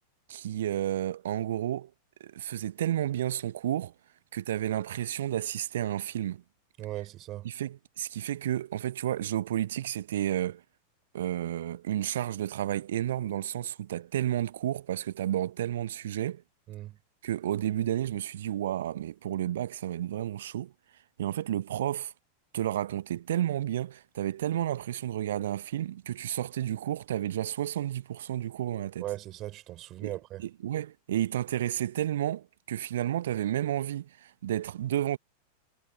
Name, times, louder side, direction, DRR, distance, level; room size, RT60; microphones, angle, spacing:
voice 1, 0.3-1.9 2.2-3.9 4.3-6.4 7.4-10.6 11.1-16.4 17.2-20.7 21.2-22.1 22.5-29.0 30.0-30.1 30.4-35.2, right 12 dB, 60° right, 1.0 m, -31 dB
voice 2, 6.8-7.5 16.7-17.0 29.0-30.5, right 15 dB, 35° right, 5.1 m, -38 dB
figure-of-eight pair, 90°, 0 cm